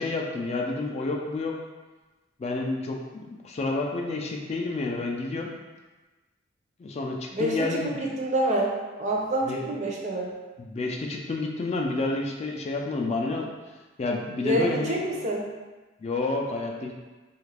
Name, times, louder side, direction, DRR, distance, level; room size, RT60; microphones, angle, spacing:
voice 1, 0.0-1.5 2.4-5.5 6.8-8.0 9.5-9.8 10.6-13.5 14.0-15.0 16.0-16.9, left 3 dB, 35° left, 1 dB, 0.3 m, -29 dB
voice 2, 8.2-8.7 9.0-10.3 14.4-15.4, right 1 dB, 35° right, -1 dB, 0.5 m, -26 dB
3.2 x 2.4 x 3.3 m, 1.2 s
head